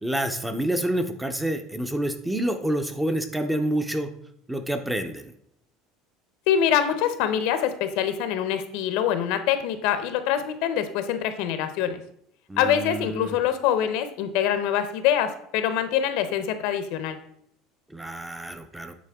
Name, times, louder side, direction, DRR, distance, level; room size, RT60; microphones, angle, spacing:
voice 1, 0.0-4.1 4.5-5.3 12.5-13.4 17.9-18.9, right 1 dB, 5° right, 7 dB, 0.5 m, -28 dB
voice 2, 6.5-12.0 12.6-17.2, left 9 dB, 70° left, 10 dB, 0.7 m, -24 dB
8.4 x 4.3 x 3.5 m, 0.71 s
cardioid pair, 155°, 0 cm